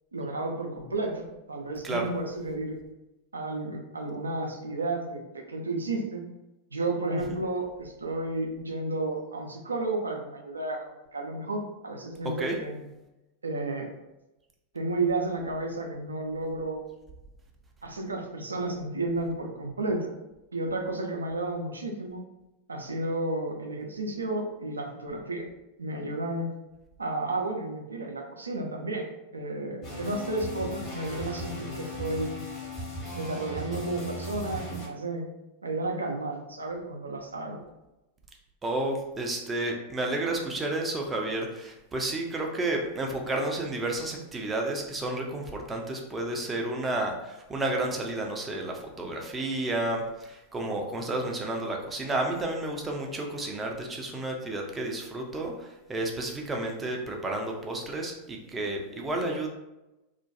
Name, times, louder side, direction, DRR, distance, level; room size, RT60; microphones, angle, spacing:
voice 1, 0.1-2.8 3.3-6.3 6.7-12.8 13.4-13.9 14.7-16.9 17.8-20.2 20.5-22.2 22.7-25.5 25.8-26.5 27.0-32.4 33.1-35.3 35.6-37.6, right 2 dB, 75° right, 2 dB, 0.4 m, -32 dB
sound 1, 29.8-34.9, equal, 30° left, 1.2 m, -37 dB
voice 2, 38.6-59.5, right 2 dB, 15° right, 1 dB, 0.5 m, -31 dB
2.4 x 2.2 x 2.6 m, 0.97 s
figure-of-eight pair, 90°, 0 cm